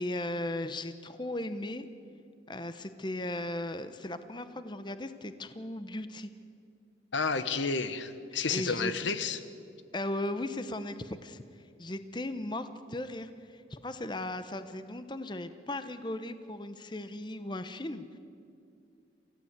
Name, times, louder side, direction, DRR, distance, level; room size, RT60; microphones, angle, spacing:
voice 1, 0.0-1.9 2.5-6.3 8.5-8.9 9.9-18.2, left 1 dB, 25° left, 10 dB, 0.8 m, -37 dB
voice 2, 7.1-9.4, left 4 dB, 85° left, 11 dB, 1.2 m, -31 dB
28.0 x 15.5 x 8.1 m, 2.5 s
head